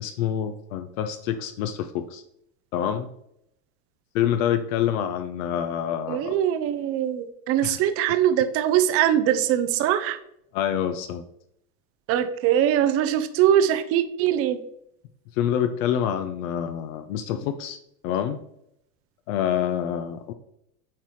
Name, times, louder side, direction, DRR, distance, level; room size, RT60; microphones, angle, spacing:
voice 1, 0.0-2.2 2.7-3.1 4.1-6.3 7.6-7.8 10.5-11.2 15.3-17.8 18.0-18.4 19.3-20.3, left 9 dB, 60° left, 9 dB, 0.7 m, -26 dB
voice 2, 6.1-10.2 12.1-14.6, right 10 dB, 30° right, 10 dB, 0.5 m, -22 dB
8.6 x 4.0 x 3.1 m, 0.76 s
hypercardioid pair, 115°, 47 cm